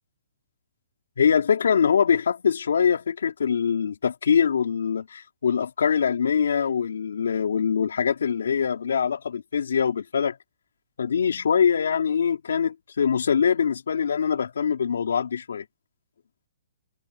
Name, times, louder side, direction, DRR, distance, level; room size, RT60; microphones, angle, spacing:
voice 1, 1.2-10.4 11.0-15.6, left 7 dB, 75° left, 3.8 m, -23 dB
hypercardioid pair, 180°, 0 cm